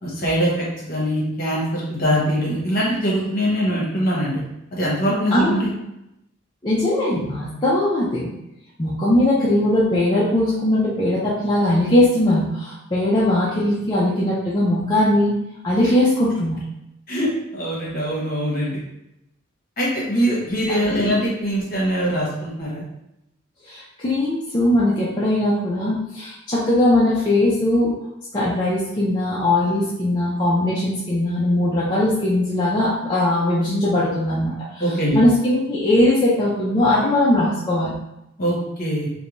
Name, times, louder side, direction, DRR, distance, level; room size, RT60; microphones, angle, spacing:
voice 1, 0.0-4.4 4.7-5.7 17.1-18.8 19.8-22.8 34.8-35.2 38.4-39.1, equal, 45° left, -5 dB, 1.0 m, -22 dB
voice 2, 5.3-5.7 6.6-8.3 8.8-15.3 15.6-16.6 20.8-21.2 23.6-27.9 28.3-34.8 35.1-37.9, left 1 dB, 20° left, -8 dB, 0.4 m, -20 dB
2.5 x 2.2 x 3.0 m, 0.88 s
head